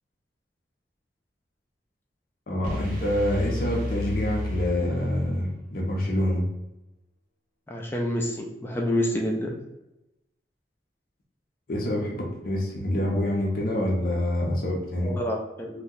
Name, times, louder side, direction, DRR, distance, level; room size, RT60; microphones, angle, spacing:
voice 1, 2.5-6.5 11.7-15.1, left 1 dB, 50° left, -2 dB, 0.6 m, -26 dB
sound 1, 2.6-5.5, left 1 dB, 50° right, 0.7 m, -32 dB
voice 2, 7.7-9.6 15.0-15.8, left 1 dB, 15° left, 0 dB, 0.3 m, -28 dB
2.6 x 2.1 x 3.6 m, 0.93 s
head